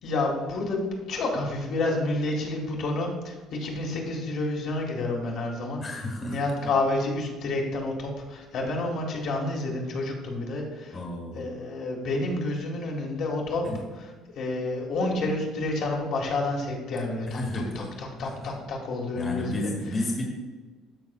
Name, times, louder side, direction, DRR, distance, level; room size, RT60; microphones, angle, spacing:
voice 1, 0.0-5.8 6.3-11.0 11.3-13.6 14.3-19.7, left 2 dB, 50° left, -1 dB, 1.6 m, -29 dB
voice 2, 5.8-6.4 10.9-11.4 13.6-13.8 17.3-18.0 18.2-18.4 19.1-20.2, left 1 dB, 20° left, 0 dB, 1.4 m, -32 dB
13.0 x 5.4 x 2.3 m, 1.3 s
cardioid pair, 170°, 0 cm